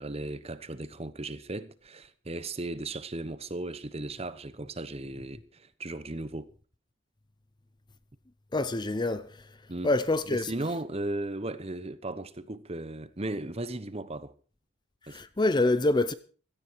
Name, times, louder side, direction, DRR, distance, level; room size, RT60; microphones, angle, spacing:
voice 1, 0.0-6.5 9.7-9.9 10.3-14.3 15.1-15.2, right 2 dB, 30° right, 0.9 m, -36 dB
voice 2, 8.5-9.3 9.8-10.5 15.1-16.1, left 2 dB, 20° left, 0.6 m, -26 dB
17.0 x 13.5 x 4.6 m
head